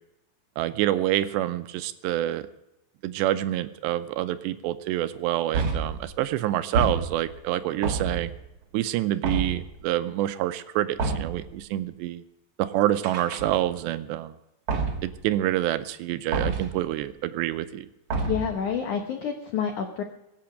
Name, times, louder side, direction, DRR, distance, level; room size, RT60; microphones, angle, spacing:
voice 1, 0.6-2.5 3.0-8.3 8.7-12.2 12.6-14.4 15.0-17.9, right 13 dB, 80° right, 11 dB, 2.7 m, -27 dB
Soft door banging, 5.5-6.1 6.7-7.4 7.8-8.4 9.2-9.7 11.0-11.5 13.0-13.8 14.7-15.2 16.3-16.8 18.1-18.6, right 4 dB, 55° right, 1.7 m, -28 dB
voice 2, 18.3-20.0, left 7 dB, 85° left, 5 dB, 1.7 m, -28 dB
23.5 x 8.6 x 5.1 m, 0.90 s
omnidirectional pair, 5.1 m